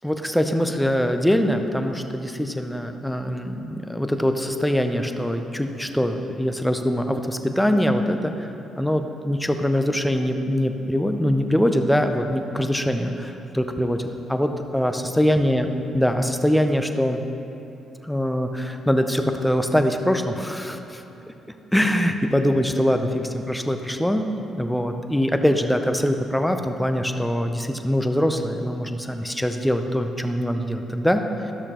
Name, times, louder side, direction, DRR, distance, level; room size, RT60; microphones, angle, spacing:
voice 1, 0.0-8.5 8.8-14.0 14.3-15.7 15.9-17.2 18.0-21.0 21.7-31.2, equal, 5° left, 6 dB, 0.5 m, -23 dB
12.5 x 6.5 x 3.0 m, 2.9 s
cardioid pair, 90°, 0 cm